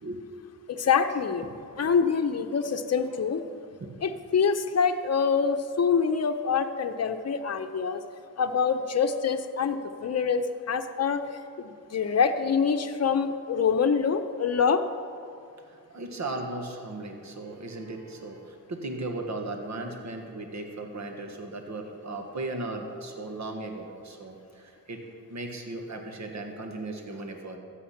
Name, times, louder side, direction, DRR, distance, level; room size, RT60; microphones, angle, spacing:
voice 1, 0.7-1.4 1.8-3.4 4.0-8.0 8.4-11.2 11.6-14.8, left 6 dB, 45° left, 7 dB, 0.8 m, -25 dB
voice 2, 15.9-25.0 25.3-27.6, right 2 dB, 50° right, 3 dB, 1.6 m, -36 dB
14.0 x 8.4 x 5.9 m, 2.3 s
cardioid pair, 80°, 35 cm